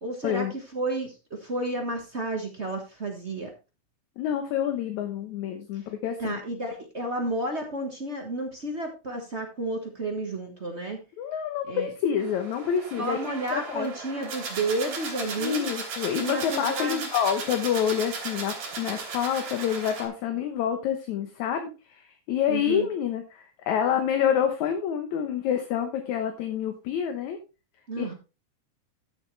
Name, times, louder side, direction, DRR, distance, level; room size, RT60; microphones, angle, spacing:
voice 1, 0.0-3.5 6.2-11.0 11.7-11.9 13.0-15.7 16.2-17.0 22.5-22.9 27.9-28.1, right 2 dB, 40° right, 2 dB, 0.9 m, -31 dB
voice 2, 4.2-6.4 11.2-13.9 15.4-27.4 28.0-28.1, left 8 dB, 70° left, 6 dB, 2.3 m, -28 dB
sound 1, 12.2-20.1, right 4 dB, 80° right, 4.7 m, -36 dB
13.5 x 7.3 x 3.3 m, 0.29 s
omnidirectional pair, 3.7 m